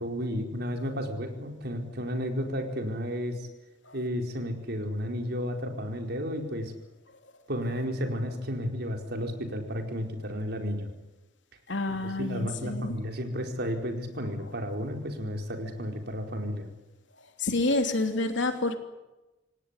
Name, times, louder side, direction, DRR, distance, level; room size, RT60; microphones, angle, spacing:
voice 1, 0.0-3.5 3.9-6.7 7.5-10.9 12.2-16.7, equal, 60° right, 4 dB, 4.6 m, -32 dB
voice 2, 11.7-13.0 17.2-18.8, left 2 dB, 70° left, 6 dB, 3.2 m, -28 dB
27.0 x 18.0 x 10.0 m, 1.0 s
head